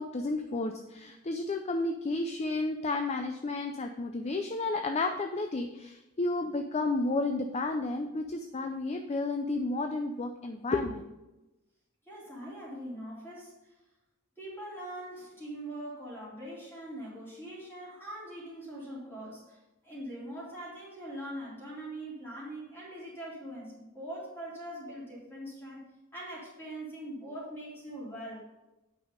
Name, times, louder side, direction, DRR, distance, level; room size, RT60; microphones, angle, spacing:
voice 1, 0.0-11.0, left 2 dB, 30° left, 6 dB, 0.5 m, -32 dB
voice 2, 12.1-13.5 14.4-19.6 19.8-28.4, right 1 dB, 10° left, -6 dB, 3.5 m, -42 dB
8.7 x 5.6 x 5.1 m, 1.0 s
head